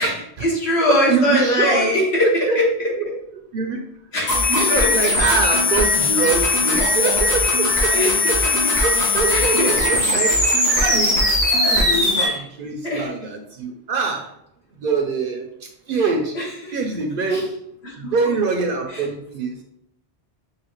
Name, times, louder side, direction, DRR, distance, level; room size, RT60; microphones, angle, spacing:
voice 1, 0.0-3.1 4.1-5.3 7.9-8.3 8.9-9.8 10.1-10.2 12.2-12.4 12.8-13.1 15.9-16.0 16.3-16.7 17.3-17.4 17.8-18.1 18.9-19.0, left 1 dB, 70° left, -4 dB, 1.6 m, -22 dB
voice 2, 0.9-1.9 2.5-2.6 2.9-3.0 3.5-3.8 4.3-8.4 8.8-11.2 11.5-14.3 14.8-16.3 16.7-17.5 18.0-19.6, right 4 dB, 60° right, 4 dB, 0.7 m, -24 dB
sound 1, 4.3-12.3, left 2 dB, 40° left, 1.7 m, -19 dB
5.7 x 2.8 x 3.0 m, 0.75 s
omnidirectional pair, 1.1 m